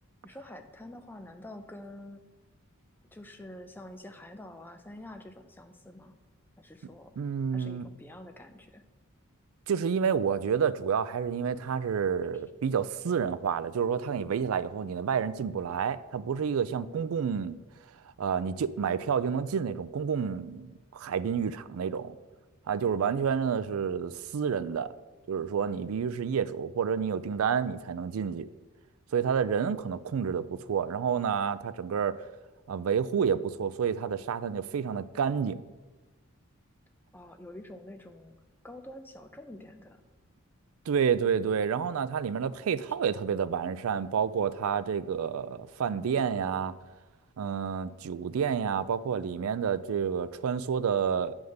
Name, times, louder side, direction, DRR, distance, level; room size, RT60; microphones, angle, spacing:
voice 1, 0.2-2.2 3.1-6.1 6.6-7.2 7.5-8.8 37.1-38.3 38.6-40.0, left 1 dB, 10° left, 6 dB, 0.5 m, -47 dB
voice 2, 7.2-7.9 9.7-17.6 18.2-22.2 22.7-24.9 25.3-28.5 29.1-32.2 32.7-35.6 40.9-46.7 47.4-51.3, right 7 dB, 80° right, 15 dB, 0.4 m, -29 dB
9.4 x 3.5 x 6.4 m, 1.2 s
head